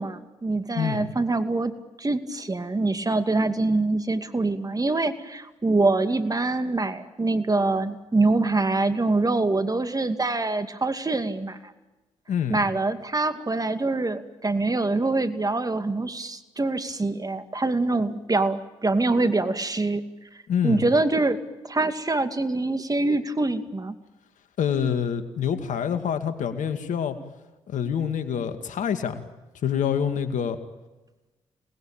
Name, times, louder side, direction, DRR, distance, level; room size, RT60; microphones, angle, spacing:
voice 1, 0.0-11.6 12.5-20.0 20.6-23.9, right 2 dB, 25° right, 9 dB, 2.5 m, -25 dB
voice 2, 12.3-12.6 20.5-20.8 24.6-27.2 27.7-29.2 29.6-30.6, left 8 dB, 70° left, 8 dB, 2.3 m, -26 dB
28.0 x 20.0 x 9.0 m, 1.1 s
hypercardioid pair, 45°, 14 cm